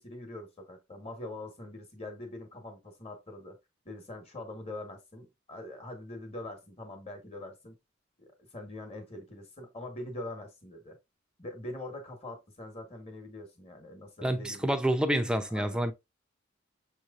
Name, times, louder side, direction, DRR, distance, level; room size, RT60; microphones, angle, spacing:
voice 1, 0.0-3.6 3.8-7.8 8.4-11.0 11.4-14.7 15.5-15.8, left 1 dB, 30° left, 1.2 m, -43 dB
voice 2, 14.2-15.9, right 1 dB, 5° right, 0.5 m, -28 dB
6.4 x 3.2 x 2.4 m
head